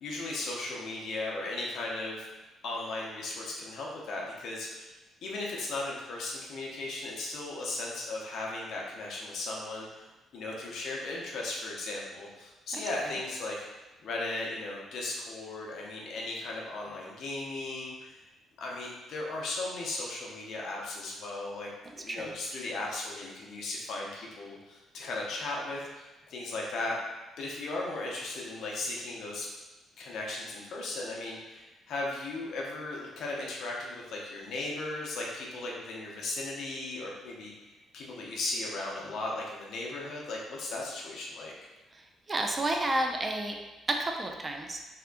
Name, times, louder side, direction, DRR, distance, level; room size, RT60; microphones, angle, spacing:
voice 1, 0.0-2.3 2.6-4.9 5.2-10.0 10.3-13.6 14.0-18.1 18.6-21.7 21.9-26.9 27.4-29.5 30.0-37.5 37.9-41.5, left 2 dB, 70° left, -2 dB, 0.6 m, -36 dB
voice 2, 42.3-43.5 44.0-44.8, right 1 dB, 25° right, 2 dB, 0.3 m, -31 dB
2.8 x 2.2 x 2.5 m, 1.1 s
cardioid pair, 95°, 0 cm